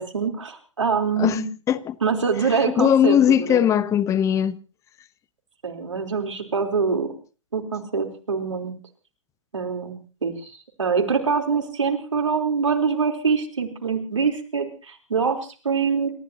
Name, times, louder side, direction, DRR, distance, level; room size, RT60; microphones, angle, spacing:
voice 1, 0.0-1.5 2.0-3.7 5.6-7.1 7.5-8.7 9.5-16.1, right 5 dB, 75° right, 3.8 m, -24 dB
voice 2, 2.6-4.6, left 9 dB, 20° left, 1.0 m, -19 dB
29.5 x 14.5 x 2.9 m
figure-of-eight pair, 110°, 16 cm